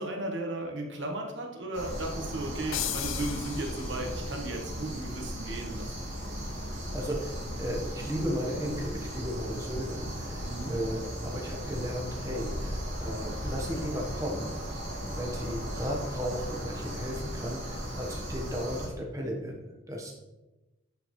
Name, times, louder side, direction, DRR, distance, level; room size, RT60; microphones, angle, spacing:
voice 1, 0.0-6.1 10.4-10.7, right 1 dB, 65° right, 2 dB, 1.3 m, -35 dB
sound 1, 1.7-18.9, equal, 85° right, 2.3 m, -37 dB
sound 2, 2.7-4.3, left 12 dB, 85° left, 0.5 m, -36 dB
voice 2, 6.9-14.8 15.0-20.1, equal, 15° right, -1 dB, 1.1 m, -35 dB
10.5 x 4.4 x 3.2 m, 1.1 s
head